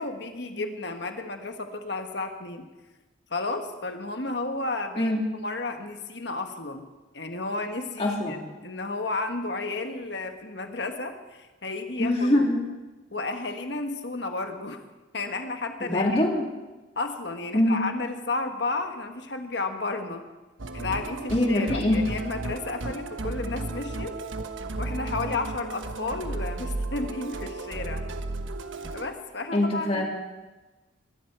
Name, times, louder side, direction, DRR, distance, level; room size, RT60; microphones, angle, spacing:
voice 1, 0.0-2.7 3.3-6.9 7.1-8.4 8.6-12.5 13.1-14.8 15.1-16.2 16.9-20.2 20.7-24.2 24.8-28.0 28.9-30.0, left 3 dB, 55° left, 6 dB, 1.4 m, -32 dB
voice 2, 8.0-8.4 12.0-12.6 15.8-16.5 17.5-17.8 21.3-22.0 29.5-30.1, left 1 dB, 30° left, 0 dB, 2.5 m, -23 dB
Musical instrument, 20.6-29.1, right 2 dB, 75° right, 1.1 m, -34 dB
23.0 x 11.0 x 4.7 m, 1.2 s
head